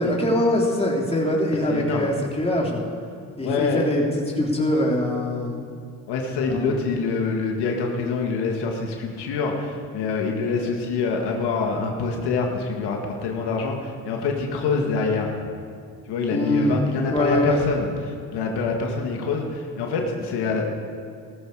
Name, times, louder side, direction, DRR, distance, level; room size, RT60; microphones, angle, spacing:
voice 1, 0.0-2.8 3.4-4.0 4.3-5.6 6.5-6.7 16.3-16.8 17.1-17.6, left 1 dB, 15° left, -2 dB, 3.4 m, -23 dB
voice 2, 1.6-2.1 3.4-3.8 6.1-15.3 16.1-20.8, left 4 dB, 75° left, 1 dB, 2.0 m, -26 dB
16.5 x 14.0 x 4.9 m, 2.3 s
supercardioid pair, 70°, 40 cm